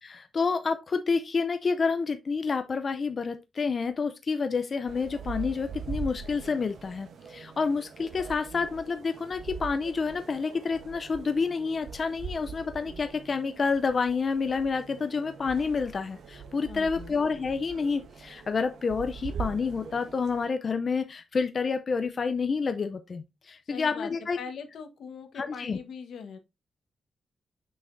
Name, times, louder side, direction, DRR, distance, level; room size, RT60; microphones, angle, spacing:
voice 1, 0.0-24.4 25.4-25.8, left 5 dB, 40° left, 0.5 m, -29 dB
sound 1, 4.9-20.5, right 5 dB, 80° right, 1.0 m, -42 dB
voice 2, 16.7-17.2 23.7-26.4, left 6 dB, 80° left, 1.3 m, -41 dB
6.4 x 5.6 x 2.6 m
wide cardioid pair, 145°, 0 cm